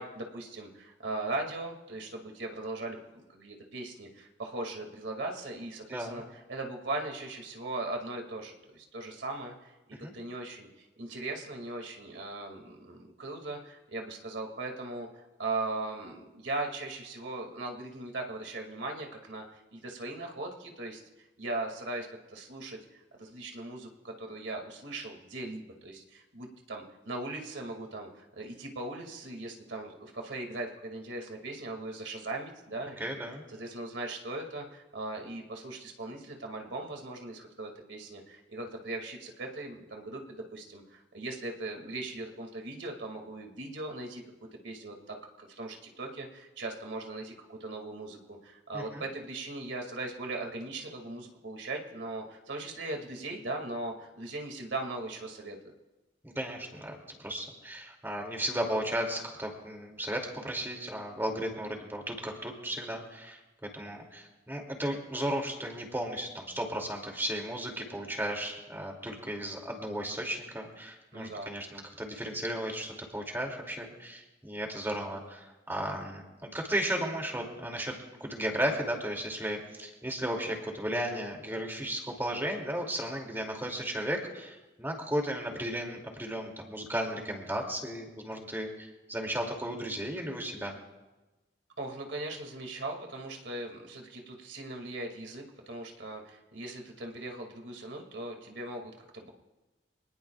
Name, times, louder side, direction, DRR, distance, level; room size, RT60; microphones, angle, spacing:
voice 1, 0.0-9.7 10.0-10.7 11.0-15.1 15.4-21.0 21.4-33.2 33.5-44.2 44.6-55.7 71.1-71.5 91.8-99.3, right 2 dB, 80° right, 2 dB, 2.3 m, -39 dB
voice 2, 5.9-6.2 10.0-10.1 33.0-33.4 48.7-49.0 56.2-90.8, right 1 dB, 10° right, 1 dB, 2.6 m, -35 dB
25.5 x 19.5 x 2.4 m, 1.1 s
head